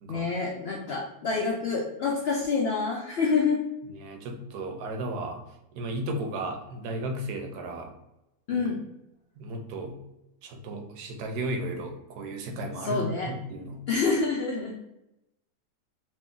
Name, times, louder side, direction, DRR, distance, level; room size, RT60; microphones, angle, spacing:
voice 1, 0.1-3.6 8.5-8.8 12.8-13.3 13.9-14.8, left 4 dB, 85° left, -1 dB, 0.5 m, -27 dB
voice 2, 3.9-5.4 5.7-7.9 8.5-8.6 9.4-10.0 10.4-13.8, right 1 dB, 85° right, 4 dB, 1.2 m, -34 dB
3.1 x 2.5 x 3.7 m, 0.91 s
omnidirectional pair, 1.6 m